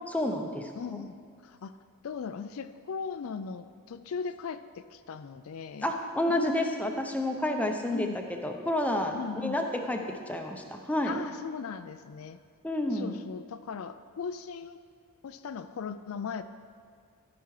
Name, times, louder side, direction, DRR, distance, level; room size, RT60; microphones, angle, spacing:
voice 1, 0.1-0.7 5.8-9.2 9.4-11.2 12.6-13.2, left 1 dB, 5° left, 3 dB, 0.7 m, -30 dB
voice 2, 0.8-1.2 1.4-1.8 2.0-5.9 6.3-6.4 7.9-8.2 9.1-9.6 11.0-12.4 12.9-14.8 15.2-16.4, left 6 dB, 70° left, 11 dB, 0.4 m, -38 dB
14.0 x 5.9 x 4.8 m, 2.3 s
head